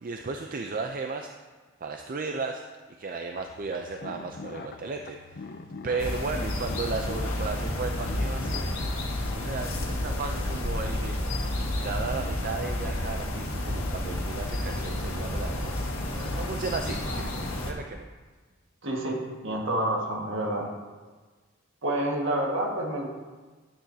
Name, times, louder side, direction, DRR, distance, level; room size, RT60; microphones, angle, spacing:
voice 1, 0.0-1.3 1.8-2.6 3.0-5.6 5.8-8.8 9.3-11.2 11.8-18.1, right 4 dB, 45° right, 4 dB, 0.5 m, -35 dB
sound 1, 3.3-8.6, left 3 dB, 50° left, 0.5 m, -43 dB
sound 2, 6.0-17.7, left 1 dB, 80° left, 1.6 m, -30 dB
voice 2, 18.8-20.7 21.8-23.1, right 1 dB, 65° right, -1 dB, 1.7 m, -28 dB
10.0 x 10.0 x 2.8 m, 1.3 s
head